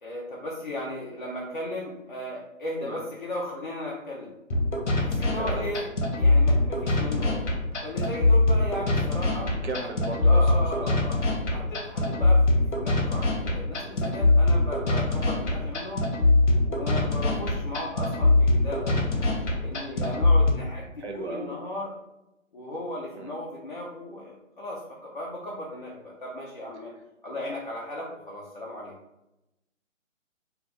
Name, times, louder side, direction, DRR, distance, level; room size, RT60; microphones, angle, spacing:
voice 1, 0.0-4.3 5.0-5.9 6.2-7.4 7.8-9.5 10.3-11.2 11.5-16.1 16.7-19.3 19.6-21.9 22.5-26.9 27.2-28.9, left 1 dB, 40° left, -5 dB, 0.4 m, -36 dB
sound 1, 4.5-20.5, left 2 dB, 65° left, 0.8 m, -23 dB
voice 2, 5.4-5.7 9.5-11.0 11.3-11.7 17.3-17.4 21.0-21.5 23.1-23.3, right 3 dB, 60° right, 3 dB, 0.6 m, -37 dB
2.4 x 2.4 x 3.2 m, 0.92 s
figure-of-eight pair, 135°, 39 cm